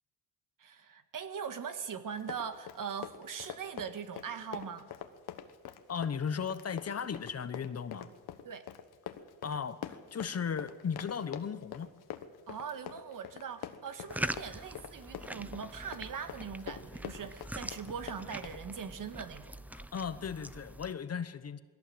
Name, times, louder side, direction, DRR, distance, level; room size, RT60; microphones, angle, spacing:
voice 1, 0.6-4.9 8.4-8.7 12.5-19.6, right 7 dB, 55° right, 9 dB, 1.7 m, -41 dB
Run, 2.1-18.6, left 10 dB, 75° left, 1.5 m, -45 dB
voice 2, 5.9-8.1 9.4-11.9 19.7-21.6, left 6 dB, 40° left, 13 dB, 1.1 m, -36 dB
sound 1, 14.1-20.9, right 1 dB, 5° right, 0.6 m, -43 dB
21.5 x 17.0 x 7.9 m, 1.5 s
cardioid pair, 95°, 38 cm